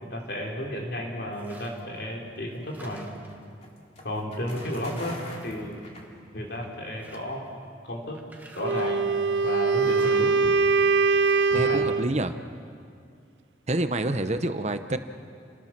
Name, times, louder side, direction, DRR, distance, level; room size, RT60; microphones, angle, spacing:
voice 1, 0.0-3.1 4.0-5.8 6.3-7.5 7.8-8.2 8.5-9.1 9.4-10.5 11.5-11.8, equal, 60° left, -1 dB, 4.2 m, -33 dB
sound 1, 1.3-2.0 2.4-3.4 4.1-4.2 4.5-6.2 6.6-7.5 8.1-9.1 9.7-10.4 11.2-11.8, right 2 dB, 10° right, 1.7 m, -50 dB
sound 2, 2.3-6.7, left 1 dB, 35° left, 3.1 m, -45 dB
Wind instrument woodwind instrument, 8.6-12.1, right 4 dB, 75° right, 0.6 m, -22 dB
voice 2, 11.5-12.3 13.7-15.0, right 1 dB, 35° right, 9 dB, 1.0 m, -27 dB
29.0 x 20.5 x 6.1 m, 2.3 s
head